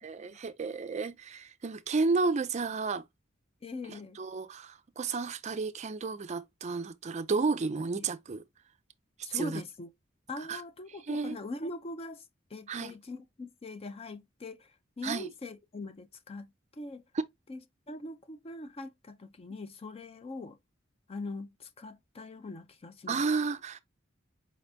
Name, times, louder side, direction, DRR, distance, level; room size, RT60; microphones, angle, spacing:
voice 1, 0.0-3.0 3.9-8.4 9.3-9.6 10.4-10.6 10.9-11.4 12.7-12.9 15.0-15.3 17.1-17.2 23.1-23.8, right 4 dB, 35° right, 0.4 m, -32 dB
voice 2, 3.6-4.2 9.2-9.9 10.3-12.2 12.5-14.6 15.0-16.5 16.8-17.0 17.5-17.6 17.9-20.6 21.1-23.3, left 2 dB, 30° left, 0.5 m, -41 dB
5.0 x 3.3 x 2.6 m
head